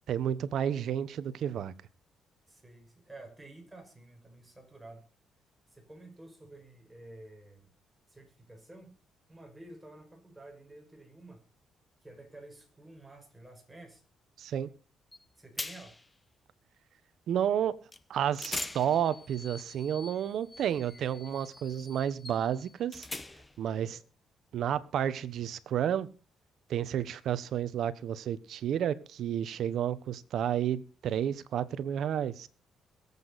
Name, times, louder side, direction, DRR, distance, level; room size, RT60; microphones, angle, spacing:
voice 1, 0.1-1.7 14.4-14.7 17.3-17.8 18.1-23.1 23.6-24.0 24.5-26.1 26.7-32.5, right 9 dB, 70° right, 16 dB, 1.1 m, -31 dB
voice 2, 2.5-5.1 5.7-7.7 8.1-9.0 9.3-11.4 12.0-14.0 15.4-16.0 23.7-24.0, right 2 dB, 10° right, 3 dB, 5.9 m, -51 dB
sound 1, 15.1-15.2 15.6-16.1 17.9-18.0 18.4-23.6, left 2 dB, 15° left, 1.0 m, -43 dB
22.0 x 8.4 x 4.1 m, 0.34 s
cardioid pair, 90°, 0 cm